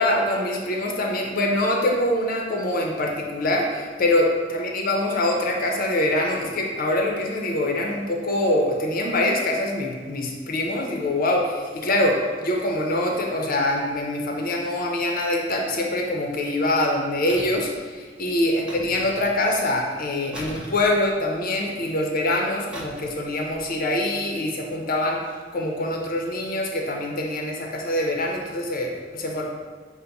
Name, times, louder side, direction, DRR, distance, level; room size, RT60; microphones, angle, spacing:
voice 1, 0.0-25.2 25.5-29.5, left 1 dB, 50° left, 1 dB, 0.6 m, -24 dB
sound 1, 17.3-17.7 18.7-19.4 20.3-21.5 22.7-23.2 23.5-23.7, equal, 5° right, 0.6 m, -39 dB
5.7 x 2.1 x 3.9 m, 1.4 s
head